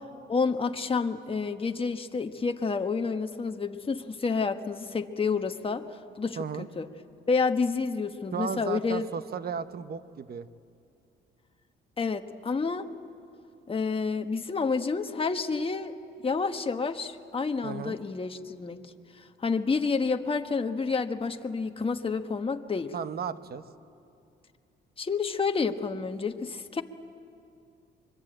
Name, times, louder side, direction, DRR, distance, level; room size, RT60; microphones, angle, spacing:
voice 1, 0.3-5.8 6.2-6.9 7.3-9.0 12.0-12.9 13.7-15.9 16.2-18.8 19.2-22.9 25.0-26.8, left 4 dB, 25° left, 6 dB, 1.3 m, -29 dB
voice 2, 6.4-6.7 8.3-10.5 17.6-18.0 22.9-23.6, right 7 dB, 50° right, 12 dB, 1.0 m, -34 dB
24.0 x 23.0 x 9.0 m, 2.5 s
cardioid pair, 90°, 20 cm